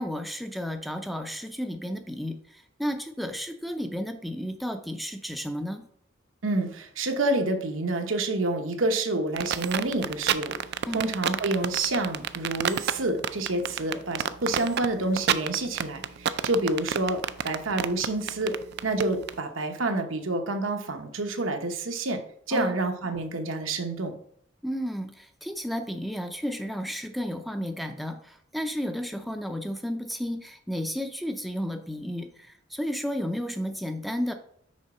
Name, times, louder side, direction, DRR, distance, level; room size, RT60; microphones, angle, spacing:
voice 1, 0.0-5.8 10.9-11.0 22.5-22.8 24.6-34.3, equal, ahead, 5 dB, 0.5 m, -32 dB
voice 2, 6.4-10.6 10.9-18.5 18.8-22.2 22.5-24.1, right 2 dB, 85° right, 5 dB, 1.0 m, -28 dB
sound 1, 9.4-19.3, right 9 dB, 60° right, 0.4 m, -28 dB
6.4 x 4.7 x 4.2 m, 0.63 s
head